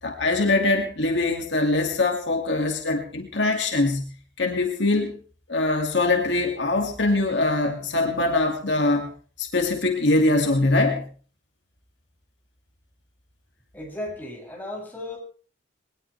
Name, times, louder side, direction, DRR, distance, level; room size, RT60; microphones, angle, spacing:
voice 1, 0.0-4.1 4.4-5.2 5.5-9.1 9.4-11.1, left 2 dB, 70° left, 2 dB, 2.6 m, -23 dB
voice 2, 13.7-15.2, left 1 dB, 10° left, -2 dB, 7.6 m, -35 dB
21.5 x 19.5 x 3.4 m, 0.40 s
head